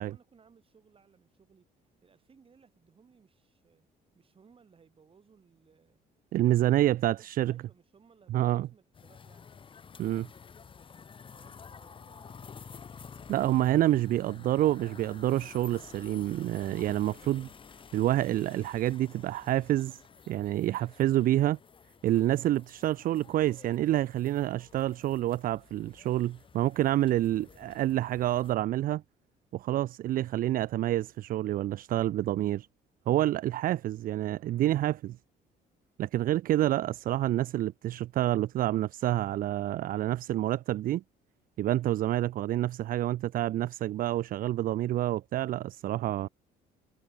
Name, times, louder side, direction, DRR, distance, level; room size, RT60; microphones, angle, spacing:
voice 1, 0.0-3.9 4.1-6.0 6.6-9.5 11.3-12.6 13.1-13.7 46.2-46.3, right 6 dB, 35° right, 6.7 m, -62 dB
voice 2, 6.3-7.5 8.3-8.7 10.0-10.3 13.3-17.5 17.9-21.6 22.0-29.0 29.5-32.7 33.1-35.2 36.0-41.0 41.6-46.3, right 14 dB, 55° right, 0.5 m, -28 dB
sound 1, 8.9-28.6, left 6 dB, 30° left, 1.1 m, -51 dB
cardioid pair, 110°, 17 cm